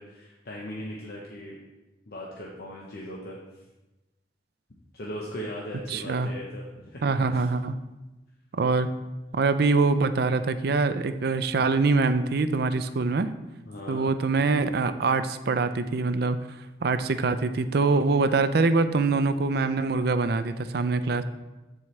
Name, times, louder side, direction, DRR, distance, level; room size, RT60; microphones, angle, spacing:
voice 1, 0.0-1.6 2.1-3.4 4.9-7.5 13.7-14.1, equal, 60° left, -3 dB, 1.0 m, -38 dB
voice 2, 5.9-6.3 7.0-7.8 8.5-8.9 9.3-13.3 13.9-16.4 16.8-21.2, right 3 dB, 60° right, 11 dB, 0.5 m, -24 dB
13.0 x 4.7 x 3.2 m, 1.1 s
head